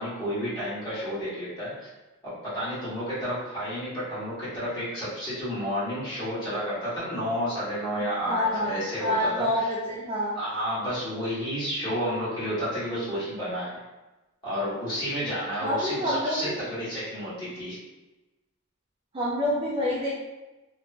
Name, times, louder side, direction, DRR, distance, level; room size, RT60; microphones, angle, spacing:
voice 1, 0.0-1.9 2.2-9.7 10.3-13.8 14.4-17.8, equal, 20° left, -12 dB, 1.4 m, -31 dB
voice 2, 8.3-10.3 15.6-16.5 19.1-20.1, left 1 dB, 25° right, -6 dB, 0.3 m, -27 dB
2.9 x 2.2 x 2.6 m, 1.1 s
head